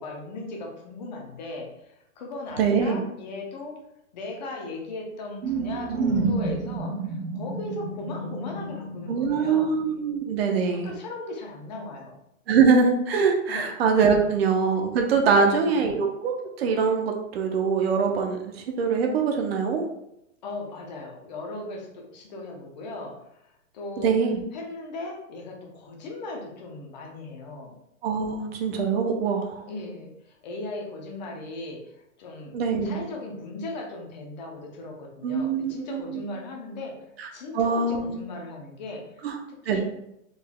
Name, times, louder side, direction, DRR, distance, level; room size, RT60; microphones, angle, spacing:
voice 1, 0.0-3.8 4.1-9.7 10.6-12.1 13.5-13.7 15.3-16.0 20.4-24.1 24.5-27.8 29.7-32.5 32.8-39.2 39.6-39.8, left 2 dB, 35° left, 1 dB, 0.6 m, -38 dB
voice 2, 2.6-3.0 9.1-10.9 12.5-18.4 18.8-19.9 24.0-24.4 28.0-29.6 32.5-33.0 35.2-36.2 37.2-37.3 37.5-38.2 39.2-39.4 39.7-39.8, right 5 dB, 50° right, 3 dB, 0.7 m, -23 dB
sound 1, 5.4-10.0, right 3 dB, 85° right, 0.8 m, -30 dB
3.9 x 3.2 x 2.2 m, 0.81 s
hypercardioid pair, 165°, 40 cm